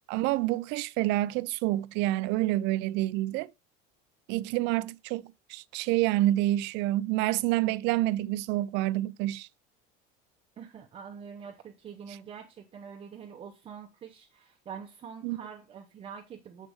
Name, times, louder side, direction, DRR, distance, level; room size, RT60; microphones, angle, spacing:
voice 1, 0.1-3.5 4.3-9.5 15.2-15.4, right 16 dB, 60° right, 0.4 m, -28 dB
voice 2, 10.6-16.7, right 7 dB, 25° right, 0.7 m, -45 dB
7.3 x 5.4 x 3.5 m
cardioid pair, 150°, 21 cm